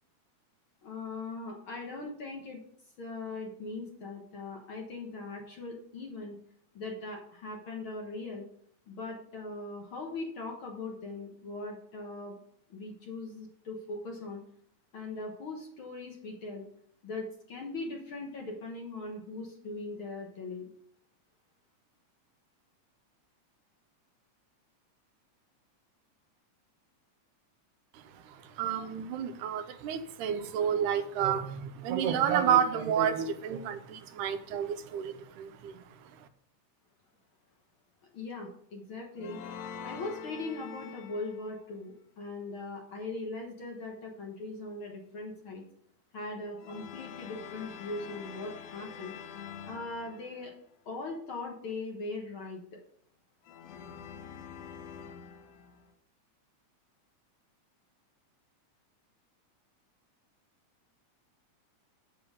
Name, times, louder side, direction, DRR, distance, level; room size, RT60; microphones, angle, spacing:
voice 1, 0.8-2.6 3.0-6.4 6.7-8.4 8.9-12.4 12.7-14.4 14.9-16.7 17.0-20.7 38.1-39.4 39.8-45.6 46.1-49.1 49.6-50.5 50.8-52.8, left 3 dB, 55° left, 0 dB, 1.6 m, -40 dB
voice 2, 27.9-36.3, right 8 dB, 80° right, 9 dB, 2.2 m, -30 dB
sound 1, 39.2-41.6 46.6-50.6 53.5-55.9, left 7 dB, 80° left, 2.3 m, -45 dB
7.8 x 7.0 x 5.1 m, 0.65 s
omnidirectional pair, 3.5 m